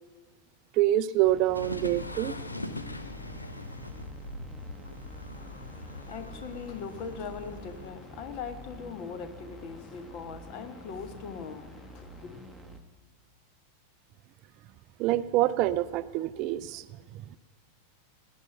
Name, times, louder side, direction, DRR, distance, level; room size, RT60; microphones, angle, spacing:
voice 1, 0.7-2.4 15.0-16.9, right 14 dB, 40° right, 0.4 m, -26 dB
sound 1, 1.2-12.8, equal, ahead, 1.3 m, -47 dB
sound 2, 1.5-7.9, left 2 dB, 80° left, 0.8 m, -41 dB
voice 2, 5.4-12.4, left 6 dB, 40° left, 1.4 m, -41 dB
18.5 x 9.9 x 6.9 m
figure-of-eight pair, 90°, 0 cm